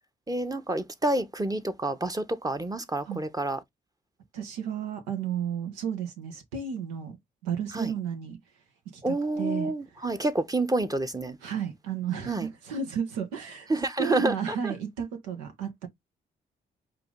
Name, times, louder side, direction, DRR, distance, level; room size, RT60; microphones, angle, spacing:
voice 1, 0.3-3.6 7.7-7.9 9.0-11.4 12.3-12.5 13.7-14.7, right 2 dB, 15° right, 0.9 m, -28 dB
voice 2, 4.3-7.2 7.4-8.4 8.9-9.7 11.4-13.7 14.0-15.9, right 7 dB, 90° right, 0.9 m, -33 dB
4.8 x 2.6 x 3.7 m
hypercardioid pair, 40°, 21 cm